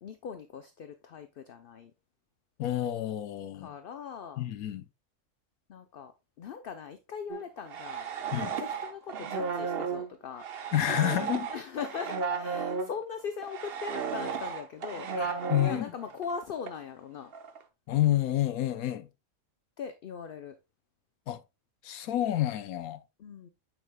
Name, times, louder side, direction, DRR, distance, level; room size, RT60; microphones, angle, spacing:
voice 1, 0.0-1.9 3.6-4.4 5.7-6.1 6.4-8.1 8.3-10.4 11.5-15.1 15.6-17.3 19.8-20.6 23.2-23.5, left 6 dB, 55° left, 0.6 m, -40 dB
voice 2, 2.6-3.7 4.4-4.8 8.3-8.5 10.7-11.5 15.2-15.9 17.9-19.1 21.3-21.4 21.8-23.0, left 13 dB, 85° left, 1.1 m, -29 dB
sound 1, 7.3-13.0 13.4-16.4 16.7-16.8 17.3-17.6, right 5 dB, 50° right, 0.9 m, -34 dB
9.2 x 6.0 x 2.2 m
omnidirectional pair, 1.5 m